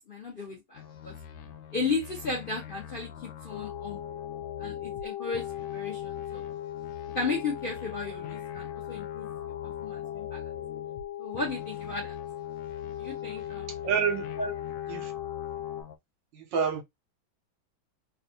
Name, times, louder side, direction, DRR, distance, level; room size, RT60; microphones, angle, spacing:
voice 1, 0.1-1.1 1.7-3.1 3.4-4.0 4.6-5.4 5.7-6.5 7.1-10.4 11.2-12.2 13.0-13.7 14.4-14.6, left 4 dB, 45° left, 0.7 m, -34 dB
sound 1, 0.8-5.1 5.3-11.1 11.3-16.0, left 8 dB, 70° left, 1.1 m, -45 dB
sound 2, 3.5-15.8, left 12 dB, 85° left, 1.5 m, -38 dB
voice 2, 13.8-14.3 14.9-15.1 16.3-16.8, right 7 dB, 75° right, 1.2 m, -28 dB
3.5 x 2.3 x 2.7 m
omnidirectional pair, 2.2 m